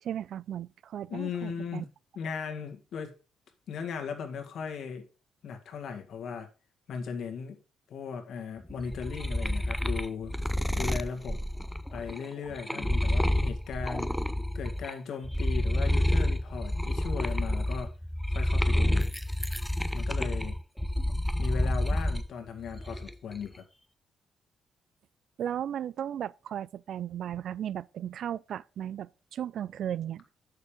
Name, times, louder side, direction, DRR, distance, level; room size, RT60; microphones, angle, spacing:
voice 1, 0.0-1.9 25.4-30.2, right 10 dB, 70° right, 0.4 m, -35 dB
voice 2, 1.1-1.9 2.1-3.1 3.7-5.1 5.4-6.5 6.9-7.6 7.9-10.3 10.7-11.4 11.9-14.1 14.5-17.9 18.3-19.1 19.9-20.6 21.4-23.6, left 6 dB, 65° left, 2.1 m, -37 dB
sound 1, 8.7-14.9 15.2-22.3 22.7-23.3, left 1 dB, ahead, 0.5 m, -29 dB
8.3 x 6.7 x 5.2 m
cardioid pair, 90°, 0 cm